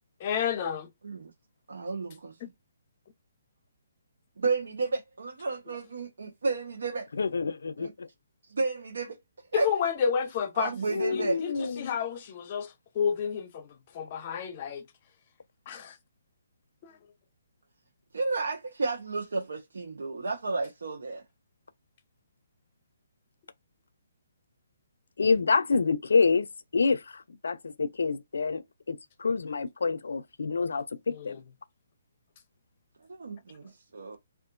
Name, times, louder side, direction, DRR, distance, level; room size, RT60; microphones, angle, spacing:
voice 1, 0.2-0.9 9.5-10.7 11.1-14.8 15.7-16.0 16.8-17.0 31.1-31.4, left 7 dB, 30° left, 0.7 m, -31 dB
voice 2, 1.7-2.4 4.4-7.1 7.8-7.9 8.5-9.2 9.5-9.7 10.6-11.4 18.1-21.2 33.1-34.2, right 3 dB, 85° right, 0.7 m, -32 dB
voice 3, 7.2-8.1 10.9-11.9 25.2-26.5 26.7-31.4, left 4 dB, 80° left, 0.4 m, -27 dB
3.7 x 2.4 x 2.4 m
hypercardioid pair, 165°, 0 cm